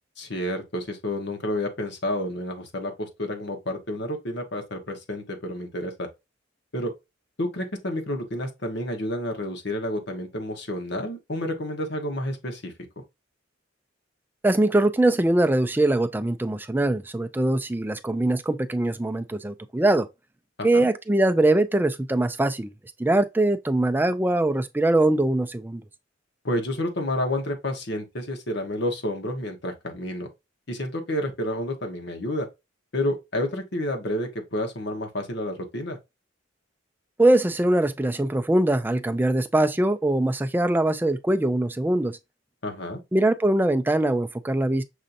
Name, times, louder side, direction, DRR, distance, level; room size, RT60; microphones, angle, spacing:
voice 1, 0.2-6.1 6.7-6.9 7.4-12.7 20.6-20.9 26.4-30.3 30.7-32.5 32.9-36.0 42.6-43.0, left 1 dB, 60° left, 1.1 m, -30 dB
voice 2, 14.4-20.1 20.6-22.7 23.0-25.8 37.2-42.2 43.1-44.8, right 1 dB, 10° right, 0.4 m, -22 dB
6.3 x 2.8 x 2.5 m
head